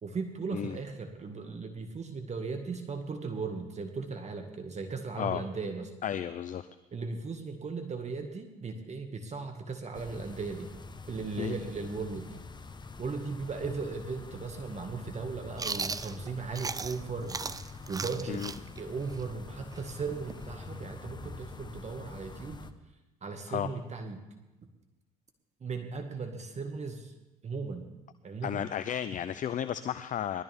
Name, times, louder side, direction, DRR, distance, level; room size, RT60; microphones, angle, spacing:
voice 1, 0.0-5.9 6.9-10.7 11.1-12.3 13.0-17.4 17.9-18.4 18.8-22.6 23.2-24.2 25.6-27.1 27.4-27.8 28.2-28.6, right 4 dB, 35° right, 5 dB, 2.1 m, -37 dB
voice 2, 6.0-6.7 11.4-11.5 18.3-18.5 23.5-23.7 28.4-30.4, left 9 dB, 45° left, 12 dB, 0.6 m, -33 dB
sound 1, 9.9-22.7, left 4 dB, 25° left, 1.1 m, -46 dB
Chewing mastication, 15.6-17.0 17.3-20.9, right 4 dB, 20° right, 0.6 m, -37 dB
19.5 x 13.5 x 3.6 m, 1.1 s
hypercardioid pair, 60°, 19 cm